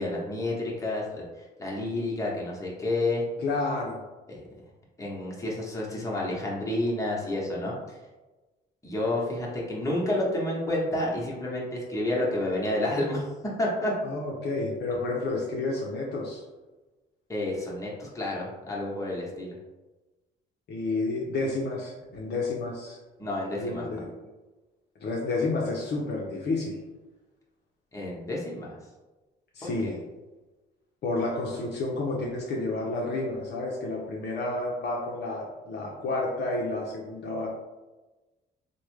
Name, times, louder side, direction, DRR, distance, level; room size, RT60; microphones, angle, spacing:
voice 1, 0.0-3.2 4.3-4.4 5.0-8.0 8.8-13.3 13.6-13.9 17.3-19.5 23.2-24.0 27.9-28.8 29.6-30.0, left 1 dB, 15° left, -4 dB, 1.0 m, -30 dB
voice 2, 3.4-4.0 14.0-16.4 20.7-23.0 23.6-24.1 25.0-26.8 29.5-30.0 31.0-37.5, left 2 dB, 55° left, -2 dB, 0.6 m, -30 dB
3.3 x 2.1 x 3.1 m, 1.2 s
cardioid pair, 90°, 20 cm